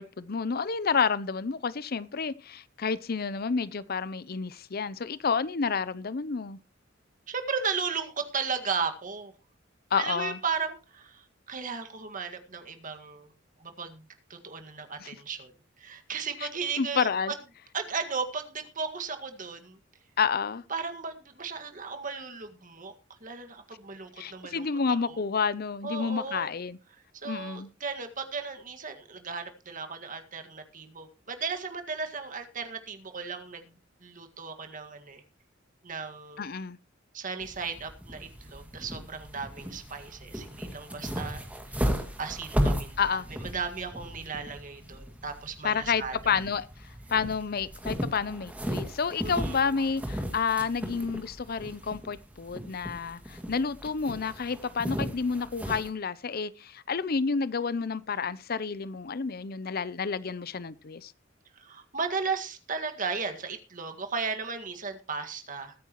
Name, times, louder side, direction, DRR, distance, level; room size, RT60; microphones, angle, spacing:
voice 1, 0.0-6.6 9.9-10.4 15.0-15.1 16.4-16.5 16.8-17.3 20.2-20.6 24.2-26.8 27.2-27.7 36.4-36.8 43.0-43.3 45.6-46.7 47.1-61.1, left 5 dB, 50° left, 0.6 m, -30 dB
voice 2, 7.3-9.3 10.0-13.3 13.6-15.5 15.8-17.4 17.7-19.8 20.7-22.9 23.2-24.7 25.1-25.2 25.8-26.5 27.2-35.2 35.8-36.5 37.1-41.8 42.2-46.3 49.2-49.6 61.5-65.7, right 5 dB, 45° right, 1.9 m, -35 dB
sound 1, 37.4-55.9, equal, 5° right, 2.2 m, -36 dB
21.5 x 9.5 x 3.0 m
head